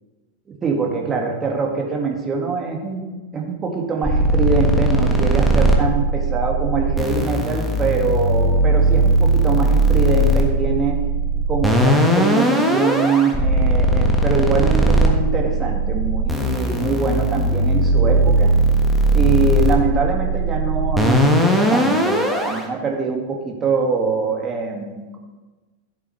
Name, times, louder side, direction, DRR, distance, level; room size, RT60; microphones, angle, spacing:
voice 1, 0.5-3.0 3.3-11.0 11.5-18.5 19.1-25.2, right 5 dB, 20° right, 0 dB, 2.0 m, -23 dB
sound 1, 4.0-22.6, right 1 dB, ahead, 1.4 m, -18 dB
14.5 x 8.1 x 3.3 m, 1.2 s
figure-of-eight pair, 90°, 0 cm